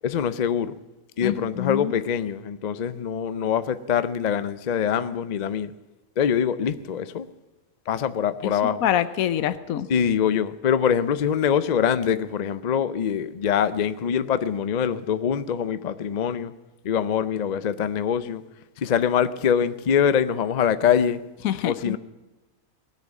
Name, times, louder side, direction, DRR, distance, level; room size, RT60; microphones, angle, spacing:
voice 1, 0.0-0.8 1.2-5.7 6.2-7.3 7.9-8.8 9.9-16.5 16.8-18.4 18.8-21.2 21.6-22.0, left 8 dB, 60° left, 0.4 m, -24 dB
voice 2, 1.2-1.9 8.4-8.5 8.8-9.9 21.4-22.0, left 11 dB, 75° left, 1.1 m, -25 dB
19.0 x 6.6 x 9.1 m
omnidirectional pair, 1.5 m